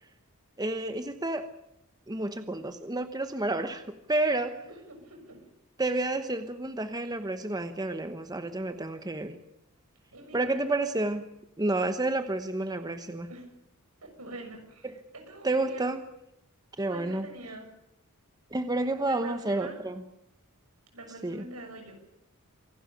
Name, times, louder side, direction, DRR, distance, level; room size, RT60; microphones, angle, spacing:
voice 1, 0.6-1.5 2.1-4.6 5.8-9.4 10.3-11.2 11.6-13.3 14.8-14.9 15.4-16.0 16.8-17.3 18.5-19.9 21.2-21.4, right 2 dB, 15° right, 8 dB, 1.1 m, -30 dB
voice 2, 4.5-5.4 10.1-10.8 13.3-13.5 14.0-14.9 15.1-15.9 16.9-17.7 19.0-19.8 20.9-22.0, right 2 dB, 80° right, 4 dB, 6.6 m, -44 dB
26.0 x 12.0 x 10.0 m, 0.83 s
head